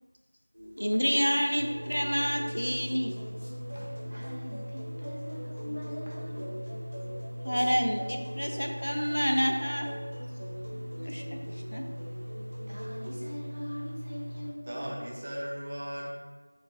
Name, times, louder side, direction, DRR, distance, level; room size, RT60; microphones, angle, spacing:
sound 1, 0.5-13.2, equal, 55° right, 1.0 m, -44 dB
voice 1, 0.8-3.1 7.4-9.9 11.0-11.4 11.7-11.8, equal, 90° left, 3 dB, 0.4 m, -28 dB
sound 2, 1.6-14.5, equal, ahead, 0.9 m, -40 dB
voice 2, 3.7-6.6 11.0-11.2 11.5-11.6 12.7-15.1, equal, 75° right, -5 dB, 1.0 m, -42 dB
voice 3, 14.7-16.1, equal, 25° right, -2 dB, 0.4 m, -36 dB
3.7 x 2.3 x 2.7 m, 1.3 s
figure-of-eight pair, 175°, 0 cm